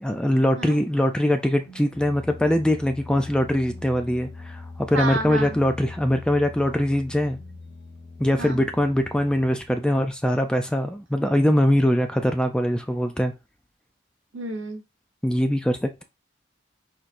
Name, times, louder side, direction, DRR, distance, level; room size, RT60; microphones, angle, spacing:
voice 1, 0.0-7.4 8.2-13.3 15.2-16.0, left 1 dB, 5° left, 0.3 m, -22 dB
sound 1, 1.4-10.2, left 3 dB, 35° left, 0.8 m, -42 dB
voice 2, 4.9-5.6 8.4-8.7 14.3-14.8, right 2 dB, 75° right, 1.1 m, -30 dB
4.5 x 4.1 x 2.5 m
head